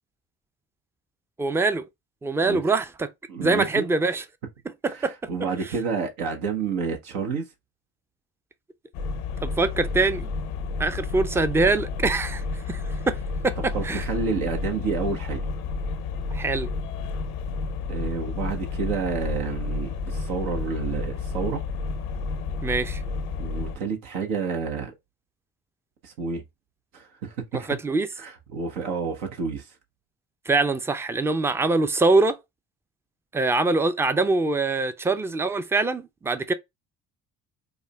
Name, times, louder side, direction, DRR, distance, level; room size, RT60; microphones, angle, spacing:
voice 1, 1.4-1.8 2.2-3.1 3.4-4.2 4.8-5.1 9.4-10.3 10.8-12.4 12.7-12.8 13.1-14.0 16.3-16.7 22.6-23.0 27.7-28.1 30.5-32.4 33.3-36.5, right 3 dB, 5° right, 0.3 m, -23 dB
voice 2, 3.3-3.8 4.9-7.5 13.7-15.5 17.9-21.6 23.4-24.9 26.0-26.4 26.9-27.7 28.2-29.6, right 5 dB, 75° right, 1.0 m, -29 dB
sound 1, 8.9-23.8, left 3 dB, 75° left, 0.7 m, -31 dB
4.8 x 2.1 x 2.2 m
hypercardioid pair, 50°, 45 cm